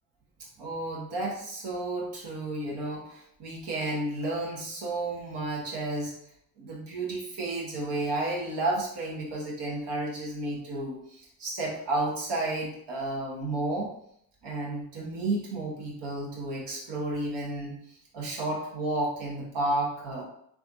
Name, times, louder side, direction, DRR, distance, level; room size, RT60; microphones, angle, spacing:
voice 1, 0.6-6.1 6.6-13.9 14.4-20.2, right 2 dB, 70° right, -3 dB, 1.2 m, -32 dB
3.3 x 2.4 x 2.6 m, 0.71 s
hypercardioid pair, 50°, 43 cm